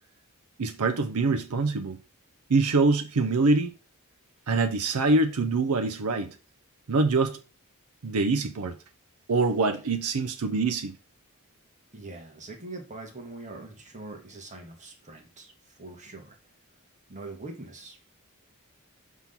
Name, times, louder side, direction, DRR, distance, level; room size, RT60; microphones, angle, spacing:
voice 1, 0.6-2.0 2.5-3.7 4.5-6.4 6.9-7.4 8.0-8.7 9.3-11.0, right 3 dB, 85° right, 0.6 m, -24 dB
voice 2, 11.9-16.4 17.1-18.0, right 2 dB, 35° right, 1.8 m, -43 dB
6.0 x 3.7 x 5.8 m
head